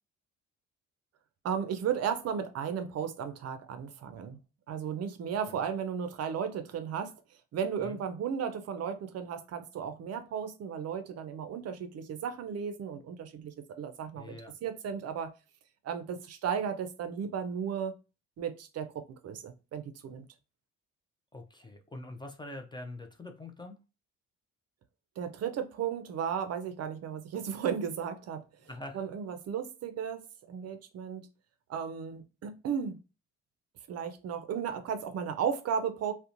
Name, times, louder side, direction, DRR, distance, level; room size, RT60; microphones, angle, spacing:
voice 1, 1.4-4.4 4.7-7.1 7.5-15.3 15.8-17.9 18.4-20.3 25.2-28.4 28.9-31.3 31.7-33.0 33.9-36.1, right 7 dB, 55° right, 0.5 m, -35 dB
voice 2, 14.2-14.5 21.3-23.8 28.6-29.0, left 2 dB, 15° left, 0.4 m, -44 dB
2.8 x 2.1 x 2.5 m
cardioid pair, 90°, 30 cm